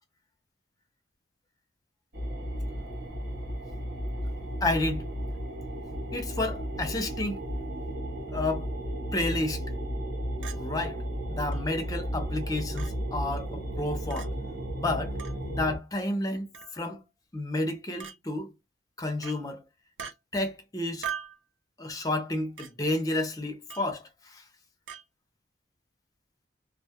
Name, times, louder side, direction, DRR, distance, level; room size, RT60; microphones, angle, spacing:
sound 1, 2.1-15.8, equal, 55° right, 0.8 m, -34 dB
voice 1, 4.6-5.1 6.1-7.4 8.3-8.7 9.1-9.6 10.6-11.0 11.3-14.3 14.8-15.2 15.5-17.0 17.3-18.5 19.0-19.6 20.3-21.1 21.8-24.0 24.3-24.4, left 2 dB, 20° left, 0.5 m, -31 dB
Chink clink, 10.4-10.6 11.5-11.6 12.8-12.9 14.1-14.3 15.2-15.4 16.5-16.8 18.0-18.2 19.2-19.4 20.0-20.2 21.0-21.4 22.6-22.7 23.7-23.9 24.9-25.0, right 8 dB, 85° right, 0.6 m, -39 dB
2.2 x 2.1 x 2.8 m
head